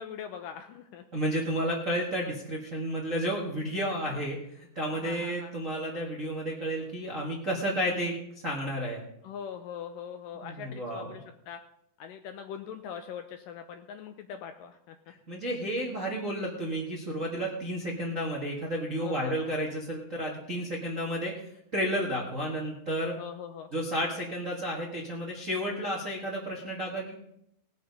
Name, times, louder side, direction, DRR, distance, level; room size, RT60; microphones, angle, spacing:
voice 1, 0.0-1.0 4.9-5.6 9.2-11.6 12.0-15.0 19.0-19.4 23.2-23.7, left 8 dB, 80° left, 7 dB, 2.0 m, -41 dB
voice 2, 1.1-8.1 8.4-9.0 10.4-11.1 15.3-21.4 21.7-23.2 23.7-27.1, equal, 50° right, -3 dB, 0.9 m, -32 dB
19.0 x 6.7 x 5.3 m, 0.77 s
omnidirectional pair, 4.4 m